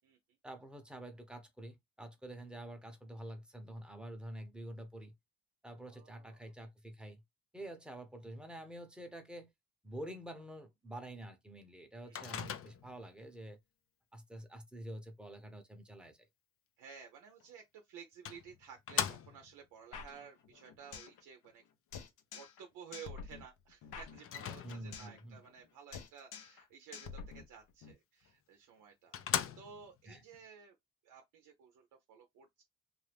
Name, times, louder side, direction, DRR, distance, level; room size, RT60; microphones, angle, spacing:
voice 1, 0.4-5.1 5.6-7.2 7.5-9.5 9.8-13.6 14.1-16.3 24.6-25.4 30.1-30.2, right 1 dB, 5° right, 0.8 m, -48 dB
voice 2, 5.8-6.5 12.0-12.3 16.8-21.6 22.3-30.8 31.0-32.6, right 7 dB, 90° right, 0.6 m, -54 dB
Microwave oven, 12.2-13.1 17.4-17.5 18.3-19.6 24.2-25.1 28.3-28.4 28.8-28.9 29.1-30.0, left 9 dB, 50° left, 0.5 m, -38 dB
sound 1, 19.9-21.2 21.5-21.6 21.9-22.6 22.9-25.2 25.5-25.7 25.9-26.6 26.9-27.9, left 6 dB, 85° left, 0.7 m, -48 dB
2.6 x 2.5 x 3.3 m
cardioid pair, 90°, 30 cm